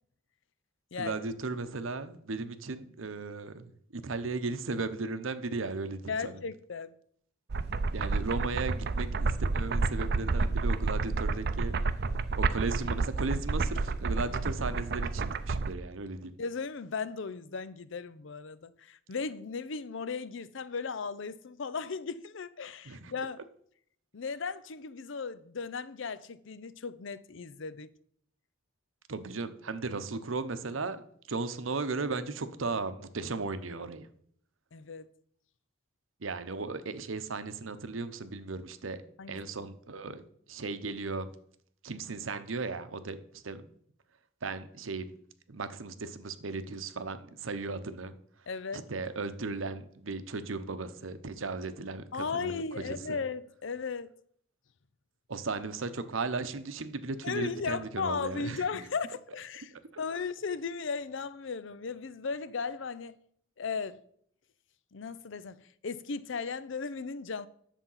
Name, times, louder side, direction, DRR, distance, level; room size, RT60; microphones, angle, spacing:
voice 1, 1.0-6.4 7.9-11.7 12.4-16.4 22.8-23.1 29.1-31.0 31.3-34.1 36.2-39.0 39.3-40.2 40.5-41.3 41.8-43.6 44.4-45.1 45.5-48.1 48.7-53.2 55.3-58.6, right 3 dB, 90° right, 0.9 m, -36 dB
voice 2, 6.1-6.9 16.4-23.4 24.1-27.9 34.7-35.1 39.2-39.4 48.5-48.8 52.1-54.1 57.2-63.2 63.6-64.0 64.9-67.5, left 5 dB, 70° left, 0.6 m, -36 dB
sound 1, 7.5-15.7, right 3 dB, 55° right, 0.6 m, -30 dB
10.0 x 7.1 x 5.6 m
head